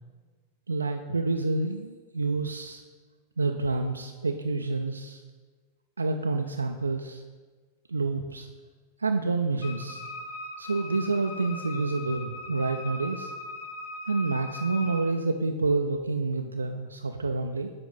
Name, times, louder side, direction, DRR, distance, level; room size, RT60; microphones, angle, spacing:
voice 1, 0.7-2.8 3.4-5.2 6.0-7.2 7.9-8.5 9.0-10.0 10.6-13.3 14.1-17.7, right 3 dB, 80° right, 4 dB, 0.3 m, -28 dB
Wind instrument woodwind instrument, 9.6-15.1, left 2 dB, 60° left, 0.8 m, -40 dB
8.5 x 5.1 x 4.0 m, 1.4 s
figure-of-eight pair, 90°, 0 cm